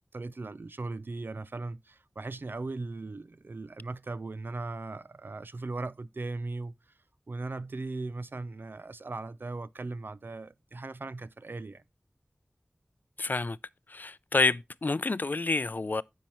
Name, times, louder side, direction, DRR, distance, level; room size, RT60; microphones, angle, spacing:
voice 1, 0.1-6.7 7.3-11.8, right 3 dB, 60° right, 0.5 m, -38 dB
voice 2, 13.2-13.6 13.9-16.0, left 3 dB, 50° left, 0.4 m, -28 dB
10.0 x 7.3 x 3.0 m
wide cardioid pair, 70°, 4 cm